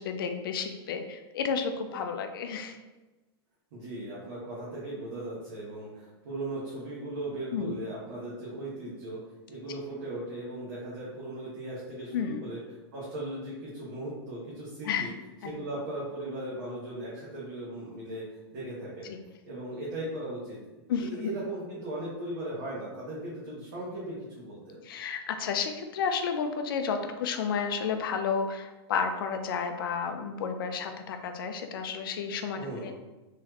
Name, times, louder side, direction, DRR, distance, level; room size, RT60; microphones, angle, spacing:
voice 1, 0.0-2.8 7.5-7.7 12.1-12.4 14.8-15.1 15.4-15.5 19.1-19.2 20.9-21.3 24.8-32.9, left 6 dB, 55° left, 6 dB, 0.5 m, -31 dB
voice 2, 3.7-9.2 9.5-12.6 12.9-15.1 15.4-19.1 19.5-24.8 32.6-32.9, right 1 dB, 40° right, -7 dB, 1.0 m, -38 dB
4.0 x 3.1 x 2.9 m, 1.1 s
supercardioid pair, 175°, 14 cm